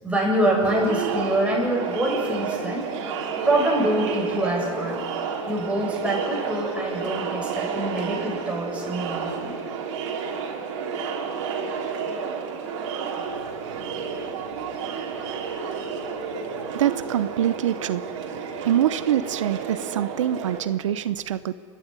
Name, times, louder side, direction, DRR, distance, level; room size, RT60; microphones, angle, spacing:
voice 1, 0.0-2.9 3.4-5.0 5.5-9.5, right 1 dB, 10° right, -3 dB, 7.6 m, -25 dB
Crowd, 0.6-20.6, right 5 dB, 70° right, 3.4 m, -31 dB
voice 2, 16.7-18.2 18.6-21.5, right 11 dB, 90° right, 14 dB, 0.7 m, -24 dB
28.0 x 12.0 x 9.6 m, 2.3 s
hypercardioid pair, 110°, 16 cm